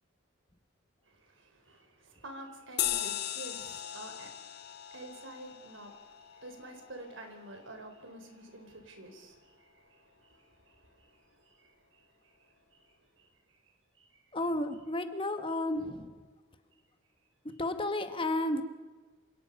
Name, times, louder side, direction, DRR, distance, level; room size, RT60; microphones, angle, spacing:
voice 1, 1.1-12.4 12.7-13.3 14.0-14.1, right 1 dB, 70° right, 5 dB, 4.2 m, -50 dB
sound 1, 2.8-7.7, left 12 dB, 55° left, 1.0 m, -38 dB
voice 2, 14.3-16.1 17.6-18.6, left 1 dB, 25° left, 8 dB, 1.3 m, -32 dB
27.0 x 18.5 x 5.4 m, 1.4 s
head